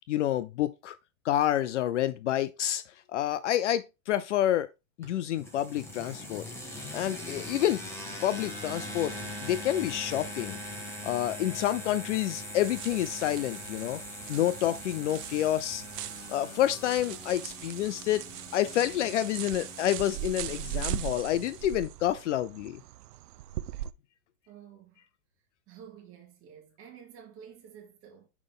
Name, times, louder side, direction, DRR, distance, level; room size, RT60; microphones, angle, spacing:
voice 1, 0.1-0.9 1.2-2.8 3.1-4.7 5.0-7.8 8.2-10.6 11.0-14.0 14.3-15.8 16.3-18.2 18.5-22.8, left 12 dB, 50° left, 0.5 m, -28 dB
sound 1, 5.0-21.8, left 1 dB, 5° left, 1.7 m, -42 dB
sound 2, 12.6-23.9, right 12 dB, 85° right, 0.6 m, -40 dB
voice 2, 24.5-25.0 25.7-28.3, right 8 dB, 30° right, 2.4 m, -50 dB
6.0 x 5.1 x 3.6 m
hypercardioid pair, 135°, 46 cm